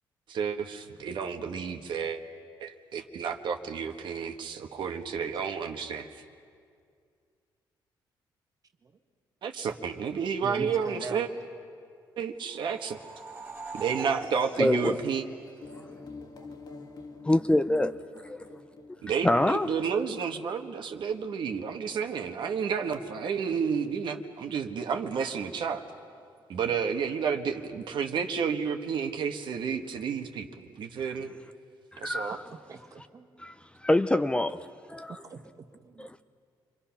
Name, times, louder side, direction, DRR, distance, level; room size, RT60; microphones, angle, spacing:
voice 1, 0.3-2.2 2.6-6.1 9.4-11.3 12.2-13.0 13.7-15.2 19.0-25.8 26.5-31.3 32.0-32.4, right 6 dB, 65° right, 1.4 m, -31 dB
voice 2, 10.4-11.2 16.4-16.5 18.5-19.0 32.7-33.4 35.2-36.1, right 4 dB, 45° right, 1.6 m, -42 dB
sound 1, 12.5-16.0, right 3 dB, 20° right, 2.0 m, -42 dB
voice 3, 14.6-15.0 17.2-18.0 18.2-18.4 19.2-19.7 31.9-32.4 33.4-33.5 33.8-35.2 36.0-36.2, left 1 dB, 10° left, 0.5 m, -25 dB
sound 2, 15.6-21.0, left 3 dB, 50° left, 1.7 m, -48 dB
28.5 x 23.5 x 5.9 m
cardioid pair, 105°, 9 cm